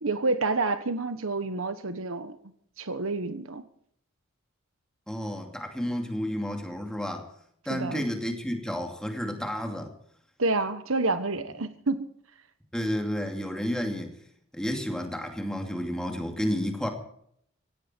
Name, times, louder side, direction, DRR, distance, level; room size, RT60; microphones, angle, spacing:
voice 1, 0.0-2.4 2.8-3.6 7.7-8.0 10.4-12.1, right 3 dB, 75° right, 11 dB, 1.3 m, -28 dB
voice 2, 5.1-7.3 7.6-9.9 12.7-14.2 14.5-16.9, equal, 5° left, 3 dB, 2.6 m, -31 dB
17.0 x 17.0 x 4.5 m, 0.68 s
head